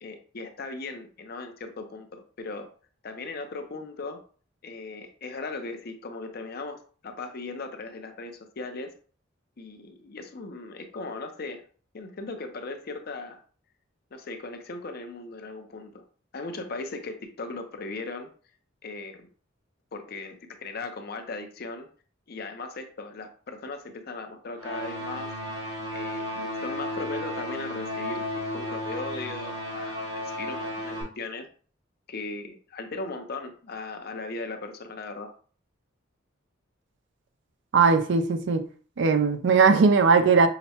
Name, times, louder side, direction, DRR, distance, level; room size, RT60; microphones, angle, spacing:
voice 1, 0.0-2.7 3.0-4.2 4.6-8.9 9.6-11.6 11.9-13.4 14.1-16.0 16.3-18.3 18.8-19.3 19.9-21.9 22.3-25.3 25.9-31.5 32.1-35.3, left 3 dB, 50° left, 0.6 m, -38 dB
sound 1, 24.6-31.0, left 1 dB, 85° right, 1.3 m, -33 dB
voice 2, 37.7-38.7 39.0-40.5, right 5 dB, 60° right, 0.4 m, -19 dB
5.8 x 2.1 x 2.8 m
head